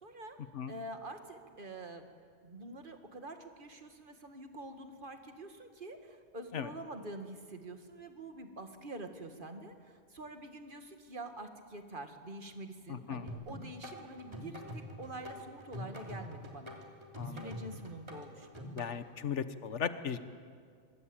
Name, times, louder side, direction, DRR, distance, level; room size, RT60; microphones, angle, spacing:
voice 1, 0.0-0.4 0.7-2.1 2.4-16.8 17.2-18.7, right 2 dB, 50° right, 6 dB, 2.1 m, -46 dB
voice 2, 12.9-13.3 17.2-17.5 18.7-20.2, left 7 dB, 90° left, 12 dB, 1.4 m, -37 dB
sound 1, 13.3-18.9, left 1 dB, 25° right, 3.1 m, -45 dB
25.0 x 21.5 x 8.9 m, 2.1 s
omnidirectional pair, 1.2 m